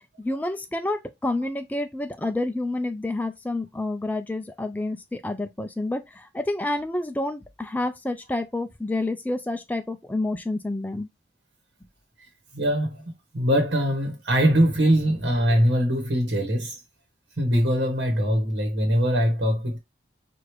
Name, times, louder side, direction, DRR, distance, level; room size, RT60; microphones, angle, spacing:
voice 1, 0.2-11.1, left 2 dB, 10° left, 0.3 m, -29 dB
voice 2, 12.5-13.0 13.3-16.8 17.4-19.8, equal, 90° right, 1.2 m, -22 dB
4.7 x 2.6 x 3.1 m
head